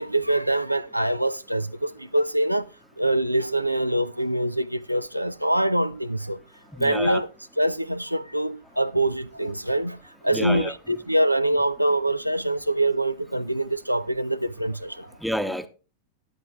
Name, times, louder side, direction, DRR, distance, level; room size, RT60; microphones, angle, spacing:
voice 1, 0.0-2.7 3.0-6.4 6.8-7.3 7.6-10.0 10.2-15.1, right 1 dB, 90° right, 0.4 m, -24 dB
voice 2, 6.7-7.2 10.3-10.7 15.2-15.7, equal, ahead, 0.9 m, -29 dB
18.5 x 8.2 x 2.4 m
figure-of-eight pair, 90°, 0 cm